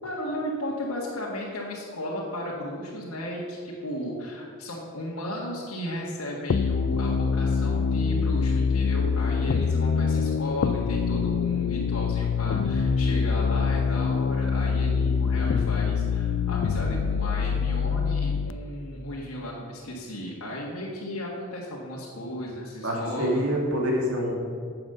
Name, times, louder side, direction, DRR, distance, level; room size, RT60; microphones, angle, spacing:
voice 1, 0.0-23.4, left 1 dB, 90° left, -5 dB, 1.6 m, -34 dB
sound 1, 6.5-18.5, left 5 dB, 60° left, 0.3 m, -25 dB
voice 2, 22.8-24.3, equal, 90° right, -2 dB, 2.6 m, -26 dB
9.4 x 7.7 x 6.7 m, 2.2 s
head